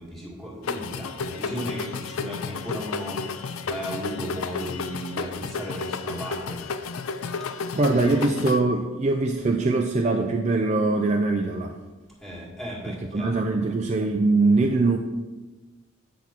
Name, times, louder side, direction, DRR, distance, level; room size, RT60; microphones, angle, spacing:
voice 1, 0.0-3.4 3.6-6.6 7.5-8.2 12.2-13.3, equal, ahead, -5 dB, 1.8 m, -35 dB
sound 1, 0.6-8.6, left 4 dB, 85° left, 0.5 m, -32 dB
voice 2, 7.7-11.7 12.9-15.0, right 3 dB, 35° right, 3 dB, 0.4 m, -22 dB
8.3 x 6.1 x 4.4 m, 1.2 s
head